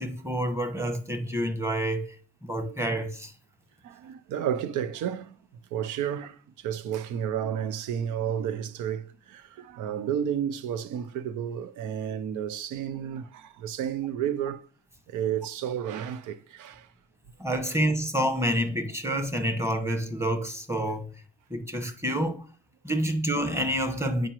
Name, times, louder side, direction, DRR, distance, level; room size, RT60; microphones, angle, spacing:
voice 1, 0.0-3.3 17.4-21.1 21.5-22.4 22.8-24.3, equal, 10° right, 1.1 m, -28 dB
voice 2, 3.8-5.4 5.7-14.6 15.1-16.9 17.7-17.8, right 9 dB, 85° right, 0.6 m, -32 dB
8.7 x 5.0 x 3.0 m
cardioid pair, 90°, 30 cm